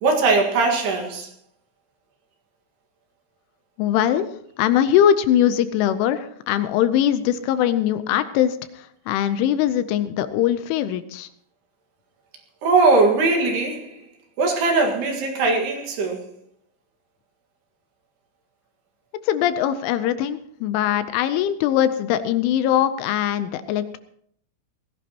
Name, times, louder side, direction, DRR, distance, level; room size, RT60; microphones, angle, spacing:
voice 1, 0.0-1.3 12.6-14.0 14.4-16.3, right 3 dB, 60° right, 2 dB, 3.4 m, -20 dB
voice 2, 3.8-4.3 4.6-11.3 19.3-24.0, left 10 dB, 80° left, 11 dB, 3.0 m, -21 dB
20.0 x 16.0 x 2.9 m, 0.67 s
omnidirectional pair, 5.8 m